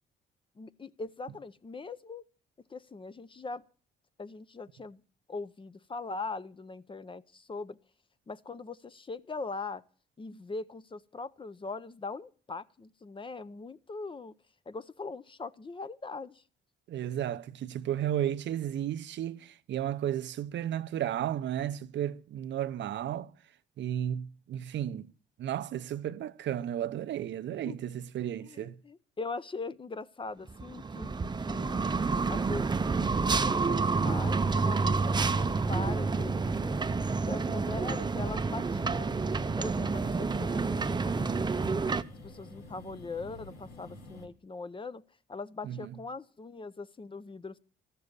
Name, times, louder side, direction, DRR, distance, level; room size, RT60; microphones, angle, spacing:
voice 1, 0.6-2.2 2.7-3.6 4.2-5.0 5.3-7.8 8.3-9.8 10.2-14.3 14.7-16.4 27.6-27.8 28.4-31.2 31.5-31.8 32.3-36.8 37.3-39.2 39.6-41.5 42.2-45.0 45.3-47.6, left 3 dB, 25° left, 0.7 m, -41 dB
voice 2, 16.9-23.3 23.8-25.1 25.4-28.8 45.6-45.9, right 11 dB, 65° right, 0.7 m, -33 dB
sound 1, 30.5-42.0, right 4 dB, 20° right, 0.6 m, -29 dB
sound 2, 35.2-44.3, left 2 dB, 90° left, 3.2 m, -49 dB
13.5 x 6.8 x 9.7 m
cardioid pair, 90°, 20 cm